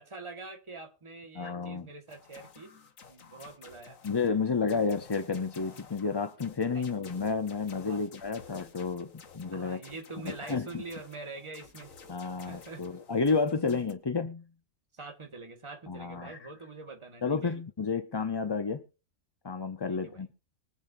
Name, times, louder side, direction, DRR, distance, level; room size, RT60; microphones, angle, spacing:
voice 1, 0.0-2.7 3.1-4.0 6.7-6.9 7.9-8.0 9.5-12.0 12.5-12.8 14.9-17.6 19.9-20.2, right 3 dB, 20° right, 1.5 m, -45 dB
voice 2, 1.3-1.9 4.0-9.8 10.2-10.7 12.1-14.5 15.9-16.5 17.2-18.8 19.4-20.3, left 4 dB, 30° left, 0.4 m, -31 dB
sound 1, 2.1-13.9, left 6 dB, 80° left, 1.6 m, -53 dB
23.0 x 8.1 x 2.6 m
omnidirectional pair, 1.4 m